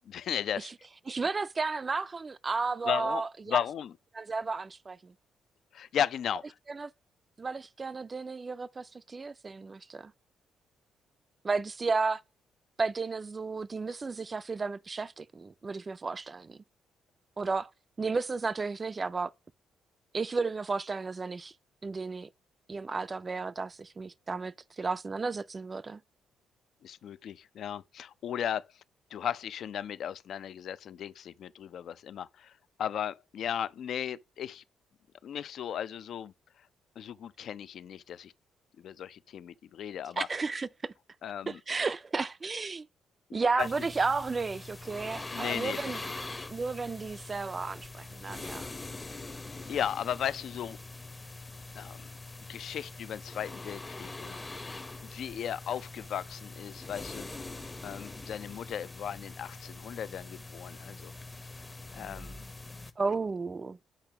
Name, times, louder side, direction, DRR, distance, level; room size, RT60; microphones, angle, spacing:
voice 1, 0.1-0.7 2.9-3.2 3.5-3.9 5.7-6.4 26.8-28.7 29.1-32.5 32.8-34.6 35.2-36.3 37.0-38.3 38.8-40.3 41.2-41.6 43.3-43.7 45.3-45.8 49.1-49.3 49.7-50.8 51.8-52.1 52.5-54.4 55.0-57.3 57.8-61.1 62.0-62.4, left 9 dB, 65° left, 0.4 m, -36 dB
voice 2, 1.1-3.6 4.1-5.1 6.7-6.9 7.4-10.1 11.4-12.2 12.8-16.6 17.4-17.7 18.0-19.3 20.1-21.5 21.8-22.3 22.7-26.0 40.2-40.9 41.5-42.9 43.3-46.0 46.5-48.7 63.0-63.8, right 4 dB, 30° right, 0.3 m, -33 dB
sound 1, 43.6-62.9, left 3 dB, 20° left, 0.6 m, -43 dB
8.5 x 2.9 x 5.7 m
cardioid pair, 90°, 0 cm